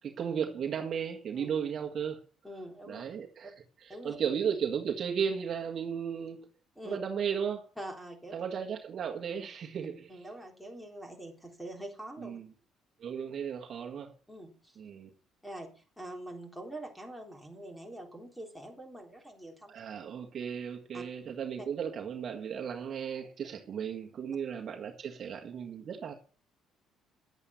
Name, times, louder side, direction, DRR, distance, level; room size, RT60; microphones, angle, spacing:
voice 1, 0.0-2.2 2.9-3.5 3.8-6.4 6.8-7.6 8.3-10.1 12.2-12.5 13.0-14.1 14.8-15.1 19.7-26.1, right 7 dB, 45° right, 1.7 m, -35 dB
voice 2, 2.4-3.0 3.9-4.2 6.8-7.0 7.8-8.4 10.1-12.4 14.3-14.8 15.4-19.8 20.9-21.0 21.6-21.7, right 1 dB, 5° left, 3.7 m, -44 dB
11.0 x 8.4 x 7.1 m
cardioid pair, 125°, 0 cm